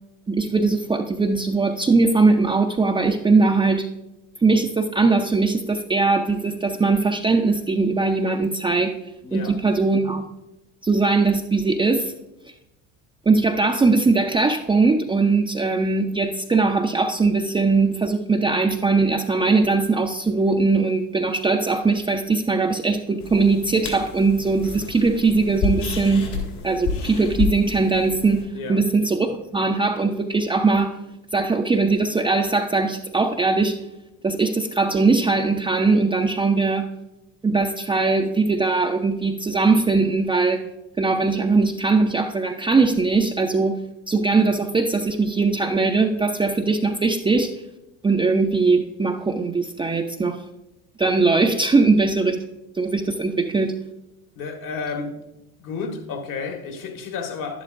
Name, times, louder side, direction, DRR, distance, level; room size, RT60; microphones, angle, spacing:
voice 1, 0.3-3.9 4.4-8.9 9.3-10.3 10.8-12.1 13.3-26.4 26.6-31.0 31.3-33.8 34.2-36.9 37.4-40.6 41.0-47.5 48.0-50.4 51.0-52.4 52.7-53.7, right 3 dB, 15° right, 0.5 m, -20 dB
voice 2, 9.2-9.6 28.5-28.8 54.3-55.1 55.6-57.6, left 5 dB, 60° left, 1.7 m, -31 dB
sound 1, 23.2-28.4, left 5 dB, 75° left, 3.1 m, -30 dB
11.0 x 11.0 x 2.6 m
supercardioid pair, 90°, 37 cm